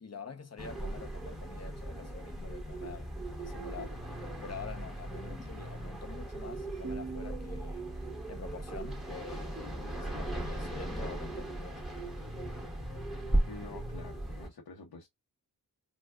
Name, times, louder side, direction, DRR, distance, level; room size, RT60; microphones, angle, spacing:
voice 1, 0.0-3.1 3.4-4.0 4.4-7.9 8.3-9.6 9.9-11.8, left 5 dB, 45° left, 0.9 m, -46 dB
sound 1, 0.6-14.5, right 1 dB, ahead, 1.6 m, -37 dB
sound 2, 6.8-10.3, right 5 dB, 35° right, 0.7 m, -46 dB
voice 2, 13.5-15.1, left 3 dB, 80° left, 1.0 m, -48 dB
4.6 x 2.4 x 2.4 m
cardioid pair, 65°, 37 cm